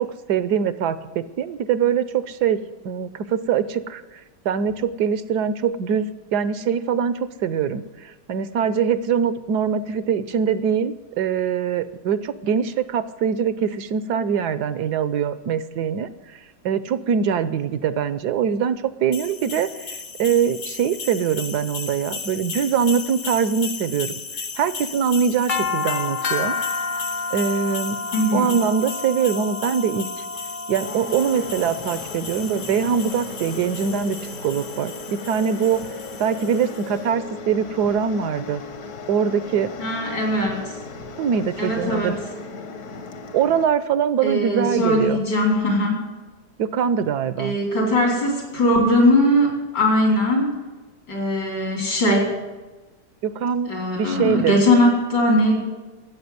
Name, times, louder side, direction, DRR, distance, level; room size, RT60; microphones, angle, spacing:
voice 1, 0.0-2.6 2.8-4.0 4.4-16.1 16.6-24.1 24.6-26.5 27.3-28.0 28.3-30.1 30.7-34.2 34.4-35.8 36.2-38.6 39.1-39.7 41.2-42.2 43.3-45.2 46.6-47.6 53.2-54.6, right 7 dB, 70° right, 14 dB, 1.2 m, -23 dB
sound 1, 19.1-36.8, left 4 dB, 40° left, 0.7 m, -31 dB
voice 2, 28.1-28.6 39.8-40.7 41.6-42.1 44.2-46.0 47.4-50.6 51.1-52.3 53.7-55.6, left 1 dB, 80° left, 0 dB, 5.1 m, -20 dB
sound 2, 30.9-43.7, left 3 dB, 60° left, 1.8 m, -36 dB
13.5 x 8.4 x 9.6 m, 1.2 s
omnidirectional pair, 1.9 m